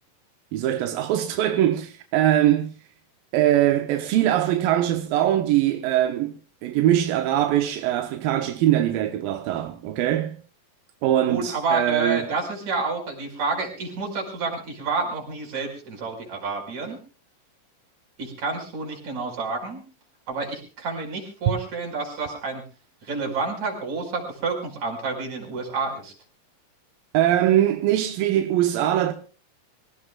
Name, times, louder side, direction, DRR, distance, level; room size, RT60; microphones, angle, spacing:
voice 1, 0.5-2.7 3.3-10.4 11.0-12.3 21.5-21.6 27.1-29.1, right 12 dB, 90° right, 2.7 m, -22 dB
voice 2, 11.3-17.0 18.2-19.8 20.3-22.6 23.0-26.1, right 4 dB, 55° right, 6.4 m, -29 dB
26.0 x 17.0 x 2.4 m
omnidirectional pair, 4.0 m